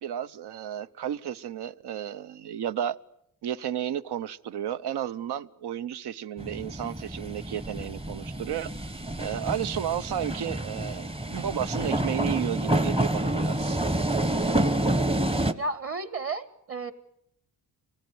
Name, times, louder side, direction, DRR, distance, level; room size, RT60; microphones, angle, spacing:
voice 1, 0.0-3.0 3.4-13.8, right 10 dB, 80° right, 0.9 m, -33 dB
sound 1, 6.4-15.5, right 1 dB, 15° right, 0.9 m, -28 dB
voice 2, 15.5-16.9, right 3 dB, 35° right, 1.5 m, -32 dB
24.5 x 19.0 x 9.3 m
wide cardioid pair, 135°, 39 cm